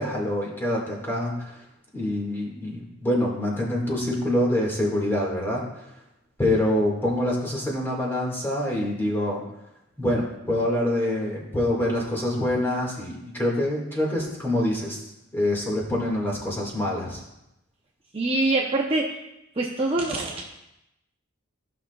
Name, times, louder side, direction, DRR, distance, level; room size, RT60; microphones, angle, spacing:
voice 1, 0.0-1.6 1.9-5.6 6.4-9.4 10.0-15.0 15.3-17.2, left 1 dB, 10° left, -3 dB, 1.8 m, -25 dB
voice 2, 18.1-19.2 19.6-20.4, right 2 dB, 25° right, -2 dB, 0.7 m, -24 dB
14.5 x 5.9 x 2.3 m, 0.88 s
head